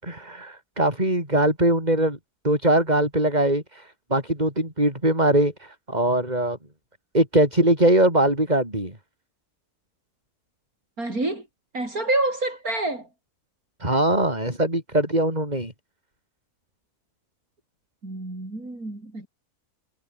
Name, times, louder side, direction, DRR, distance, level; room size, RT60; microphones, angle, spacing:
voice 1, 0.0-2.2 2.4-6.6 7.1-9.0 13.8-15.7, right 1 dB, 25° right, 7.3 m, -21 dB
voice 2, 11.0-11.5 11.7-13.1 18.0-19.3, right 2 dB, 65° right, 7.1 m, -27 dB
omnidirectional pair, 1.6 m